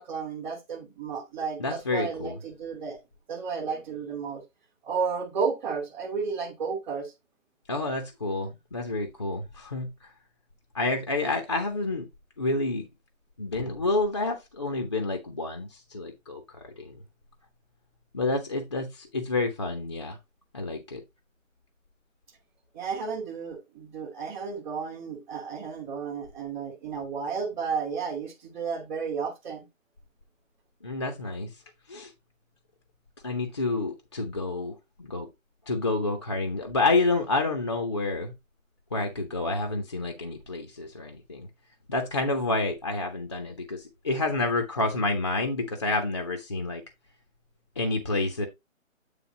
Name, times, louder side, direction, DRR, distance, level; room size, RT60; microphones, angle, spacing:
voice 1, 0.0-3.0 3.3-4.4 4.8-7.1 22.7-29.7, right 5 dB, 5° right, 1.1 m, -32 dB
voice 2, 1.6-2.4 7.7-10.1 10.7-12.1 12.4-12.9 13.4-16.9 18.1-20.2 20.5-21.0 30.8-31.6 31.9-32.1 33.2-35.3 35.7-38.3 38.9-41.5 41.9-46.8 47.8-48.5, left 2 dB, 20° left, 0.7 m, -29 dB
8.8 x 3.6 x 4.9 m
figure-of-eight pair, 160°, 41 cm